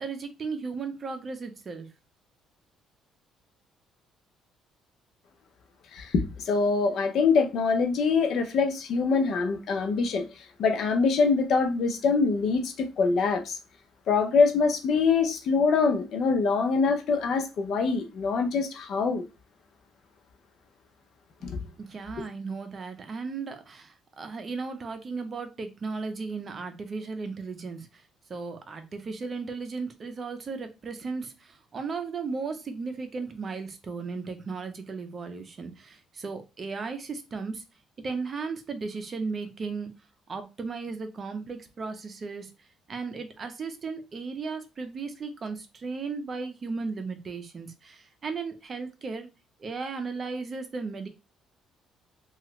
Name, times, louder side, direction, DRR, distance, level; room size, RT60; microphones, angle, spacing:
voice 1, 0.0-1.9 21.8-28.0 28.3-37.6 38.0-39.9 40.3-42.5 42.9-49.3 49.6-51.1, right 4 dB, 40° right, 0.6 m, -35 dB
voice 2, 5.9-10.3 10.6-13.6 14.1-19.2 21.4-21.6, left 4 dB, 65° left, 0.6 m, -24 dB
2.9 x 2.4 x 2.9 m
cardioid pair, 100°, 0 cm